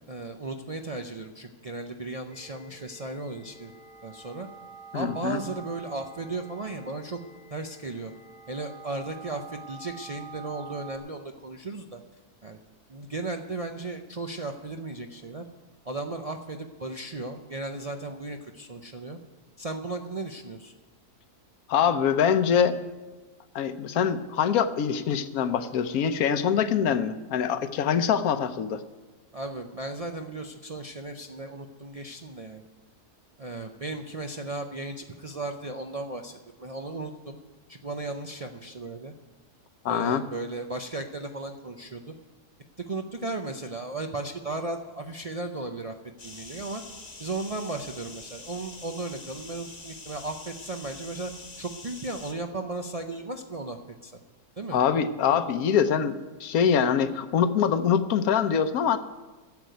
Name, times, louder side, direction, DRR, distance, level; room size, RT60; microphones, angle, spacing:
voice 1, 0.1-3.7 4.0-4.5 4.9-7.2 7.5-8.1 8.5-12.0 12.4-12.6 12.9-15.4 15.8-19.2 19.6-20.7 29.3-32.6 33.4-37.4 37.7-39.1 39.9-42.1 42.8-46.0 46.2-46.8 47.2-51.3 51.6-54.1 54.6-54.8, right 2 dB, 65° right, 3 dB, 0.3 m, -35 dB
sound 1, 2.3-11.0, right 4 dB, 35° right, 2.3 m, -47 dB
voice 2, 4.9-5.4 21.7-22.8 23.5-28.8 39.8-40.2 54.7-59.0, left 7 dB, 70° left, 11 dB, 1.2 m, -24 dB
sound 2, 46.2-52.3, left 3 dB, 30° left, 1.1 m, -45 dB
10.5 x 8.0 x 9.1 m, 1.2 s
omnidirectional pair, 1.7 m